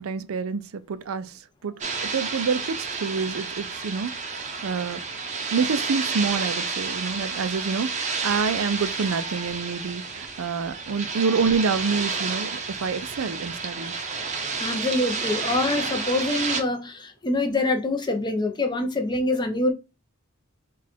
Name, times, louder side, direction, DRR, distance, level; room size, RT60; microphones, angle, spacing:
voice 1, 0.0-5.0 5.5-13.9, right 5 dB, 80° right, 0.4 m, -27 dB
sound 1, 1.8-16.6, right 4 dB, 35° right, 0.7 m, -30 dB
voice 2, 14.6-19.7, left 2 dB, 20° left, 0.7 m, -25 dB
4.0 x 2.4 x 4.4 m
head